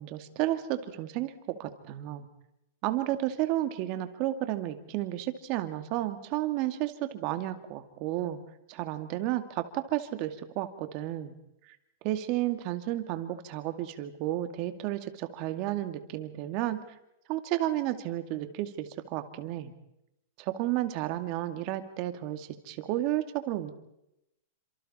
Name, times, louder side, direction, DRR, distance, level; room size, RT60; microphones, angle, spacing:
voice 1, 0.0-2.3 2.8-8.4 8.7-11.3 11.7-11.8 12.0-17.0 17.3-19.7 20.4-23.7, right 14 dB, 40° right, 9 dB, 2.3 m, -32 dB
29.5 x 26.5 x 4.3 m, 0.85 s
supercardioid pair, 160°, 0 cm